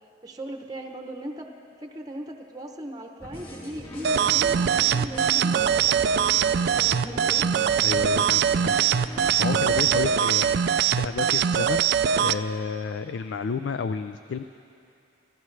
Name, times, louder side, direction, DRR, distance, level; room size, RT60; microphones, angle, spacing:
voice 1, 0.2-1.5 1.8-7.5, right 1 dB, 20° right, 3 dB, 0.8 m, -39 dB
sound 1, 3.2-10.3, equal, 30° left, 3.4 m, -40 dB
sound 2, 4.0-12.4, right 8 dB, 55° right, 0.3 m, -22 dB
voice 2, 7.8-11.9 12.2-14.4, left 5 dB, 70° left, 10 dB, 0.4 m, -31 dB
27.0 x 15.0 x 3.3 m, 2.6 s
head